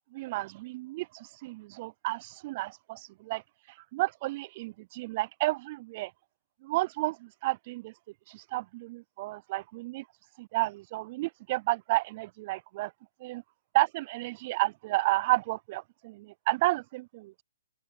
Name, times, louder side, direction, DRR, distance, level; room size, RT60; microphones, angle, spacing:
voice 1, 0.1-3.4 3.9-6.1 6.6-7.9 8.3-10.0 10.4-12.9 13.2-13.4 13.7-17.4, right 20 dB, 40° right, 0.3 m, -31 dB
open air
hypercardioid pair, 145°, 0 cm